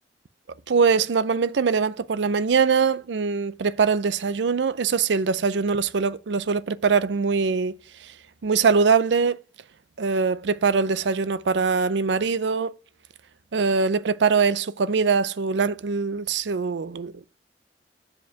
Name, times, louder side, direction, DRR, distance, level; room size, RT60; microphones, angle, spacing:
voice 1, 0.7-8.1 8.4-9.4 10.0-12.7 13.5-17.3, right 5 dB, 75° right, 0.5 m, -22 dB
7.1 x 5.1 x 5.7 m
head